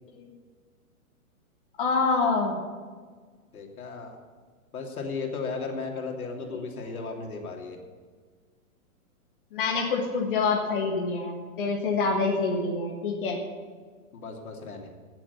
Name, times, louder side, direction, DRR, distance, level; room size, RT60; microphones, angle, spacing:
voice 1, 1.8-2.6 9.5-13.4, left 4 dB, 35° left, -1 dB, 1.7 m, -26 dB
voice 2, 3.5-4.2 4.7-7.8 14.1-14.9, left 4 dB, 75° left, 1 dB, 3.0 m, -35 dB
18.0 x 7.4 x 7.0 m, 1.6 s
hypercardioid pair, 175°, 44 cm